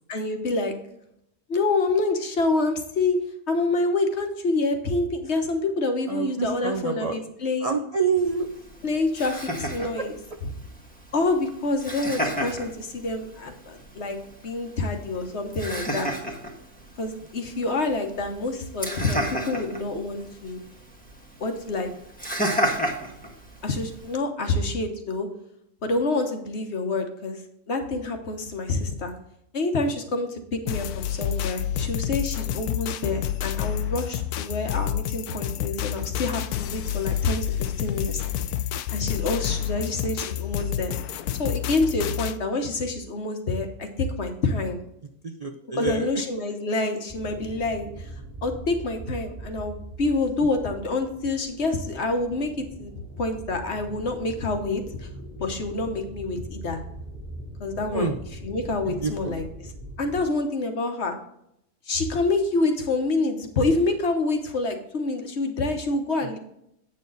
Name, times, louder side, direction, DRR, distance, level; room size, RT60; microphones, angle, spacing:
voice 1, 0.1-0.7 1.5-3.2 3.5-7.8 8.8-10.1 11.1-16.1 17.0-20.6 21.4-21.9 23.6-25.3 25.8-27.4 27.7-29.1 29.5-38.2 38.9-40.9 41.4-44.8 45.7-48.1 48.4-52.9 53.2-55.1 55.4-56.8 57.6-58.1 58.4-59.5 60.0-61.1 61.9-66.4, left 3 dB, 50° left, 5 dB, 1.3 m, -27 dB
voice 2, 6.1-7.2 7.6-8.5 10.0-10.1 45.2-46.2 50.4-50.5 57.9-58.2 58.9-59.4 66.2-66.4, right 5 dB, 70° right, 4 dB, 0.3 m, -27 dB
Laughter, 8.2-24.2, equal, 5° left, 1.3 m, -33 dB
sound 1, 30.7-42.4, left 11 dB, 80° left, 1.1 m, -29 dB
sound 2, 47.1-60.3, right 1 dB, 10° right, 2.1 m, -41 dB
8.5 x 6.8 x 3.9 m, 0.77 s
omnidirectional pair, 1.6 m